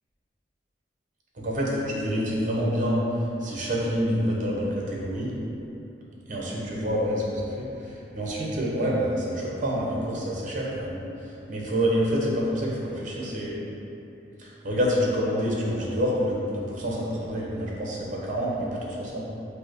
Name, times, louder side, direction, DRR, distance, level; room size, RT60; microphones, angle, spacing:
voice 1, 1.3-3.0 3.4-5.3 6.3-11.0 11.5-13.5 14.4-19.2, equal, 45° right, -4 dB, 0.9 m, -27 dB
5.4 x 2.2 x 4.5 m, 3.0 s
head